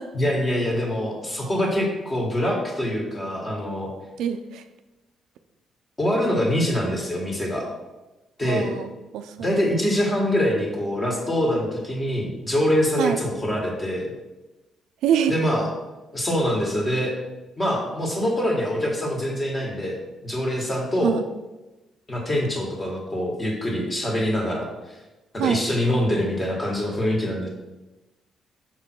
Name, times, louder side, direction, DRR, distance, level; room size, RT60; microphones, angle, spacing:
voice 1, 0.1-3.9 6.0-7.7 8.4-8.7 9.4-14.1 15.3-15.7 16.1-17.2 17.6-21.1 22.1-24.7 25.3-27.5, equal, 25° left, -1 dB, 1.9 m, -24 dB
voice 2, 4.2-4.6 8.4-9.5 13.0-13.2 15.0-15.4 21.0-21.2 25.4-25.6, right 9 dB, 85° right, 9 dB, 0.4 m, -25 dB
5.9 x 3.7 x 4.5 m, 1.1 s
cardioid pair, 90°, 0 cm